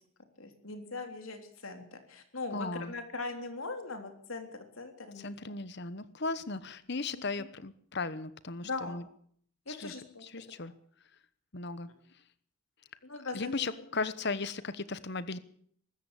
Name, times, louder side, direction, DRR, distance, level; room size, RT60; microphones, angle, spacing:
voice 1, 0.4-5.5 7.2-7.5 8.6-9.0 9.7-10.2 13.0-13.4, left 3 dB, 75° left, 6 dB, 3.7 m, -40 dB
voice 2, 2.5-2.9 5.2-9.0 9.7-9.9 10.2-10.7 11.5-11.9 13.2-15.4, left 3 dB, 50° left, 15 dB, 1.1 m, -36 dB
23.0 x 13.5 x 8.4 m, 0.63 s
head